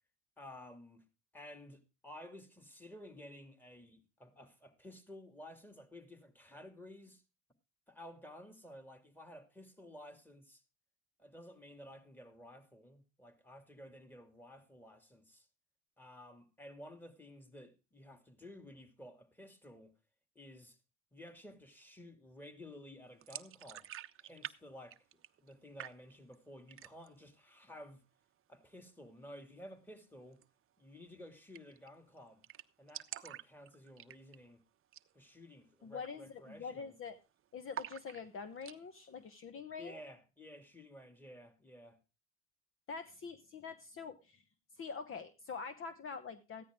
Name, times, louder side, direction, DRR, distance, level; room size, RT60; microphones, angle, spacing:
voice 1, 0.4-1.0 1.3-7.2 7.9-10.6 11.2-15.5 16.0-19.9 20.4-20.8 21.1-23.9 24.2-25.0 25.4-28.0 28.5-30.4 30.8-32.4 32.8-34.6 35.1-37.0 39.8-42.0, left 1 dB, 5° left, 2.4 m, -53 dB
sound 1, 23.2-24.6 24.8-25.5 25.8-26.4 26.7-27.2 27.6-27.7 28.0-28.6 30.3-30.5 30.8-30.9 31.1-31.2 31.5-31.9 32.2-32.3 32.4-34.5 34.8-35.1 35.5-35.6 36.1-36.4 36.6-37.2 37.7-38.8, right 11 dB, 40° right, 0.8 m, -47 dB
voice 2, 35.8-37.2 37.5-40.0 42.9-44.4 44.8-46.6, left 5 dB, 40° left, 1.1 m, -45 dB
14.5 x 10.0 x 3.7 m
supercardioid pair, 95°, 33 cm